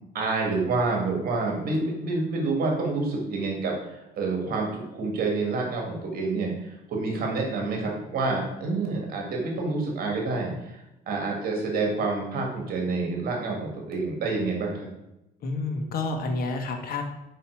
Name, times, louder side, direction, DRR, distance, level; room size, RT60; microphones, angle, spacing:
voice 1, 0.1-14.9, right 3 dB, 60° right, 0 dB, 1.9 m, -28 dB
voice 2, 15.4-17.0, left 3 dB, 60° left, 4 dB, 1.5 m, -29 dB
5.8 x 5.3 x 6.2 m, 0.92 s
cardioid pair, 110°, 17 cm